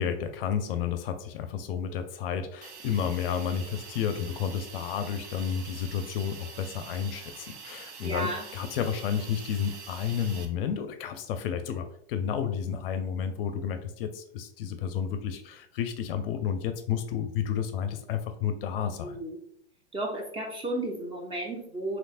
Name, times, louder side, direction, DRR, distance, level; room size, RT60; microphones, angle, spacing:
voice 1, 0.0-19.2, left 8 dB, 55° left, 8 dB, 0.5 m, -31 dB
Hiss, 2.6-10.5, right 5 dB, 75° right, 0.7 m, -45 dB
voice 2, 8.0-8.4 19.0-19.4 19.9-22.0, right 1 dB, 15° right, 0 dB, 0.6 m, -33 dB
3.2 x 2.9 x 2.4 m, 0.68 s
hypercardioid pair, 110°, 33 cm